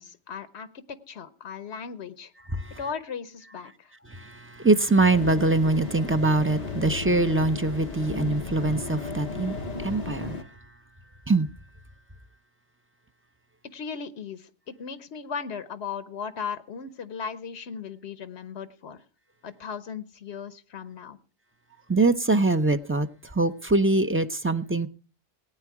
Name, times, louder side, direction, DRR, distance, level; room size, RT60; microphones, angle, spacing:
voice 1, 0.0-2.3 2.8-3.9 13.7-19.0 19.4-21.2, left 6 dB, 75° left, 1.2 m, -37 dB
voice 2, 4.1-9.6 9.8-10.4 11.3-11.5 21.9-23.1 23.3-24.9, right 2 dB, 20° right, 0.4 m, -23 dB
sound 1, 5.1-10.4, left 3 dB, 40° left, 1.0 m, -34 dB
18.5 x 9.2 x 4.7 m
omnidirectional pair, 1.1 m